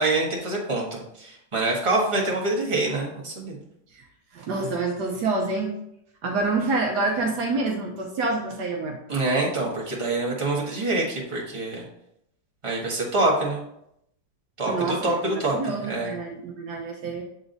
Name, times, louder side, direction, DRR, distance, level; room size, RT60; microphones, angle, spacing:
voice 1, 0.0-3.6 9.1-11.8 12.6-13.6 14.6-16.1, right 2 dB, 20° right, -4 dB, 1.5 m, -25 dB
voice 2, 4.3-5.7 6.2-9.0 14.7-17.2, right 3 dB, 70° right, 1 dB, 1.3 m, -27 dB
8.0 x 3.7 x 3.9 m, 0.77 s
omnidirectional pair, 1.9 m